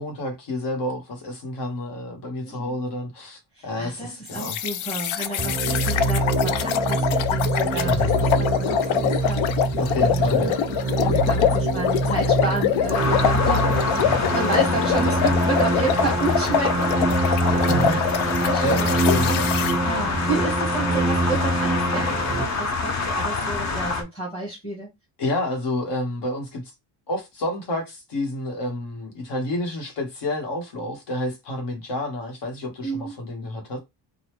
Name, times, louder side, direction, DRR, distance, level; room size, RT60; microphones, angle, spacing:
voice 1, 0.0-4.6 7.8-8.2 9.8-10.5 17.7-19.5 23.7-24.0 25.2-26.6 27.1-33.8, left 1 dB, 55° left, 1.4 m, -29 dB
voice 2, 2.4-2.8 3.6-10.5 10.9-17.9 18.4-18.9 19.2-19.4 19.8-24.9 32.8-33.2, right 3 dB, 10° left, 1.4 m, -31 dB
sound 1, 4.3-19.7, left 9 dB, 80° left, 0.6 m, -25 dB
sound 2, 5.4-22.5, right 2 dB, 20° right, 0.4 m, -25 dB
sound 3, 12.9-24.0, left 4 dB, 35° left, 0.7 m, -26 dB
4.0 x 2.3 x 3.1 m
cardioid pair, 155°, 47 cm